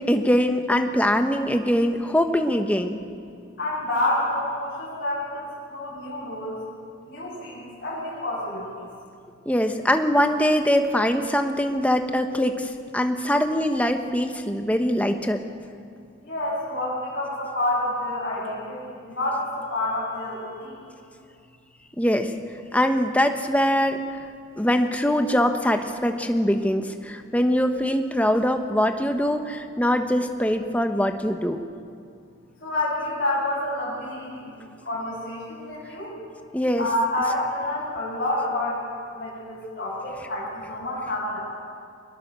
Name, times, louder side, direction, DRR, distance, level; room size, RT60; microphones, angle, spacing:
voice 1, 0.0-3.0 9.5-15.4 22.0-22.3 22.7-24.2 24.6-31.6 36.5-36.9, equal, 5° left, 6 dB, 1.1 m, -22 dB
voice 2, 3.6-6.6 7.0-8.9 16.2-20.8 32.6-36.2 36.8-38.8 39.1-41.4, left 1 dB, 50° left, -9 dB, 6.5 m, -28 dB
23.0 x 21.0 x 6.9 m, 2.3 s
head